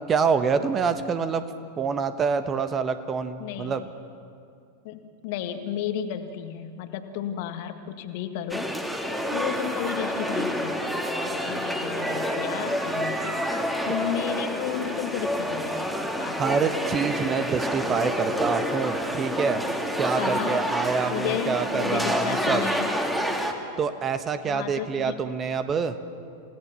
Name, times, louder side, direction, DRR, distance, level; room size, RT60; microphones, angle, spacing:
voice 1, 0.1-1.4 1.8-3.8 16.4-19.6 20.0-22.7 23.8-25.9, right 5 dB, 25° right, 10 dB, 1.3 m, -26 dB
voice 2, 3.4-3.8 4.8-8.7 9.3-13.4 13.8-16.4 20.2-20.6 21.1-22.9 24.5-25.2, left 10 dB, 50° left, 8 dB, 1.7 m, -33 dB
sound 1, 8.5-23.5, equal, 5° right, 2.2 m, -28 dB
28.5 x 17.5 x 7.1 m, 2.4 s
figure-of-eight pair, 90°, 0 cm